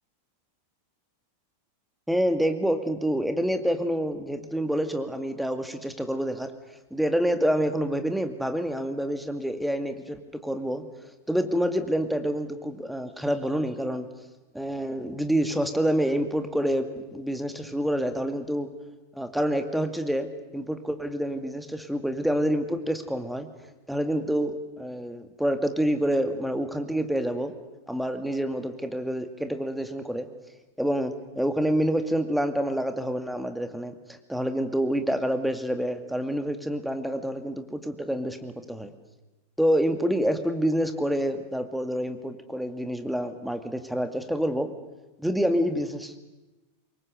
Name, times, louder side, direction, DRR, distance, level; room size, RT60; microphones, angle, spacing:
voice 1, 2.1-6.5 6.9-10.9 11.3-14.1 14.5-18.7 19.1-23.5 23.9-27.5 27.9-30.3 30.8-38.9 39.6-44.7 45.2-46.2, equal, ahead, 7 dB, 2.1 m, -27 dB
25.0 x 22.5 x 8.0 m, 1.1 s
figure-of-eight pair, 90°, 0 cm